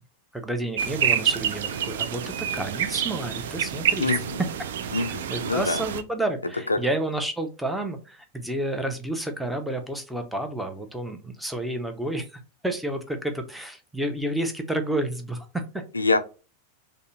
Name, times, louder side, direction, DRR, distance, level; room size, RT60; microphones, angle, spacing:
voice 1, 0.3-4.1 4.9-15.8, right 1 dB, ahead, 0.6 m, -30 dB
sound 1, 0.8-6.0, right 8 dB, 60° right, 0.3 m, -28 dB
voice 2, 4.0-4.4 4.9-5.8 6.7-6.8 15.9-16.2, left 3 dB, 80° left, 0.3 m, -25 dB
3.8 x 2.0 x 2.2 m
figure-of-eight pair, 90°, 0 cm